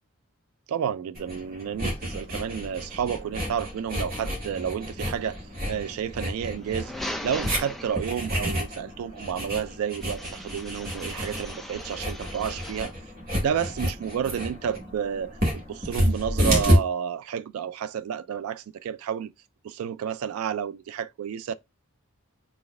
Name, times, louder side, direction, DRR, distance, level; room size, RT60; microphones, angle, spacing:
voice 1, 0.7-6.9 7.2-12.9 13.4-19.3 19.6-21.5, right 8 dB, 80° right, 0.3 m, -31 dB
sound 1, 1.2-16.8, equal, 40° right, 1.9 m, -30 dB
sound 2, 6.5-8.4 10.0-13.0, left 1 dB, ahead, 0.4 m, -39 dB
4.2 x 3.3 x 3.1 m
head